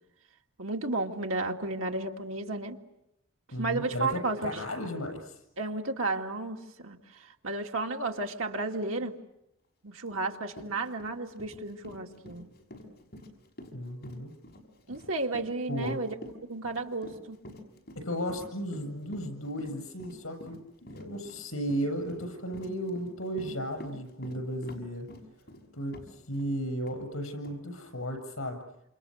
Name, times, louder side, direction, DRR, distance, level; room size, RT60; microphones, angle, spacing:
voice 1, 0.6-2.8 3.6-4.5 5.6-7.0 7.4-9.1 9.8-12.5 14.9-16.1 16.5-17.4, right 3 dB, 80° right, 3 dB, 2.4 m, -33 dB
voice 2, 3.5-5.4 13.7-14.3 15.7-16.0 17.9-20.6 20.9-25.1 25.7-28.6, equal, 85° left, 6 dB, 7.8 m, -35 dB
Run, 10.1-10.2 10.5-26.5 26.9-27.0 27.4-27.6, left 1 dB, 50° left, 6.0 m, -47 dB
28.5 x 28.0 x 6.7 m, 0.84 s
head